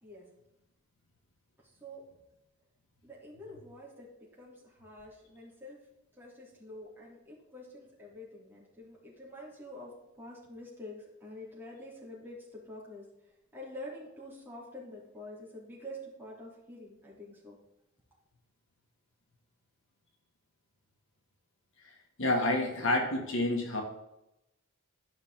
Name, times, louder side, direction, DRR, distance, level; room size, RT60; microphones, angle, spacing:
voice 1, 3.0-5.8 6.2-13.0 13.5-17.6, left 1 dB, 10° right, -6 dB, 3.2 m, -47 dB
voice 2, 22.2-23.8, left 1 dB, 65° left, 1 dB, 1.8 m, -28 dB
12.5 x 5.8 x 3.8 m, 0.88 s
head